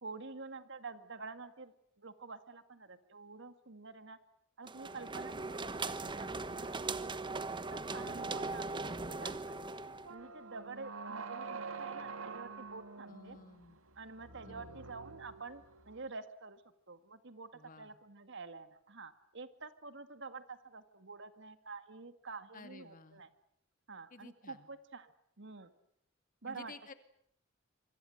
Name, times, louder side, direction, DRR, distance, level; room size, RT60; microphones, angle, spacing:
voice 1, 0.0-4.2 4.6-6.8 7.3-9.7 10.1-13.4 14.0-16.6 16.9-17.5 17.8-23.3 23.9-25.7 26.4-26.7, right 4 dB, 60° right, 10 dB, 2.1 m, -48 dB
sound 1, 4.7-10.1, right 3 dB, 25° right, 1.2 m, -39 dB
sound 2, 10.0-16.0, right 5 dB, 85° right, 2.1 m, -47 dB
voice 2, 13.1-13.8 14.4-14.8 17.5-17.9 22.5-23.2 24.1-24.7 26.5-26.9, left 3 dB, 40° left, 9 dB, 2.4 m, -53 dB
26.0 x 25.0 x 8.0 m, 0.69 s
head